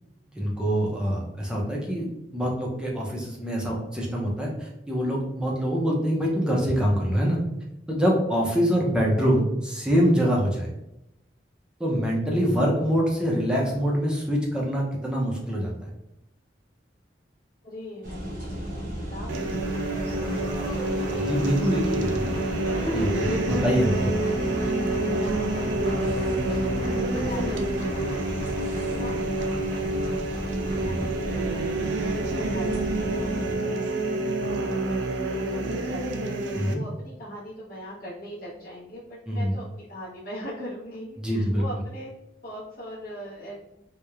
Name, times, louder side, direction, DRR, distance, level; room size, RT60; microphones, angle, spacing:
voice 1, 0.4-2.1 2.3-7.4 7.9-10.7 11.8-15.9 21.1-22.3 22.9-24.2 30.8-31.1 36.5-36.8 39.3-39.5 41.2-41.6, equal, 5° right, -3 dB, 0.5 m, -25 dB
voice 2, 17.6-20.7 21.1-22.2 22.6-23.6 24.0-24.2 25.0-28.6 28.9-31.8 32.2-36.3 36.7-42.1 42.4-43.6, equal, 55° left, -9 dB, 0.7 m, -40 dB
sound 1, 18.0-33.5, equal, 50° right, 0.7 m, -34 dB
Applause, 19.3-32.6, left 1 dB, 25° left, 0.8 m, -41 dB
sound 2, 19.3-36.7, right 2 dB, 90° right, 0.3 m, -28 dB
2.9 x 2.0 x 2.3 m, 0.86 s
head